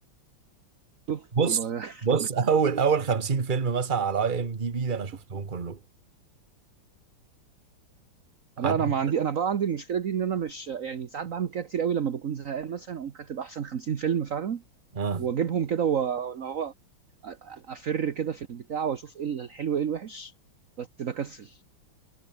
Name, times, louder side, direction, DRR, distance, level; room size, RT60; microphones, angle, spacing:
voice 1, 1.1-2.1 8.6-14.6 15.2-16.7 17.2-20.3 20.8-21.6, right 8 dB, 45° right, 1.3 m, -30 dB
voice 2, 2.0-5.8 8.6-8.8 14.9-15.2, right 6 dB, 25° right, 1.4 m, -26 dB
omnidirectional pair, 2.3 m